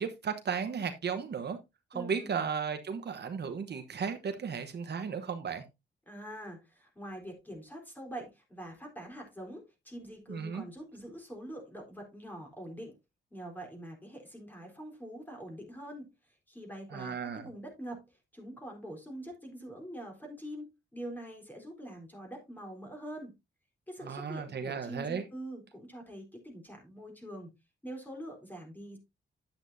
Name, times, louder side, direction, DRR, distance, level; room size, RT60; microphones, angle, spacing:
voice 1, 0.0-1.6 1.9-5.6 10.3-10.6 16.9-17.5 24.0-25.2, right 6 dB, 55° right, 1.1 m, -35 dB
voice 2, 1.9-2.4 6.1-13.0 13.3-16.1 16.5-20.7 20.9-23.3 23.9-27.5 27.8-29.0, right 1 dB, 10° left, 4.0 m, -44 dB
10.0 x 8.3 x 2.7 m
cardioid pair, 100°, 20 cm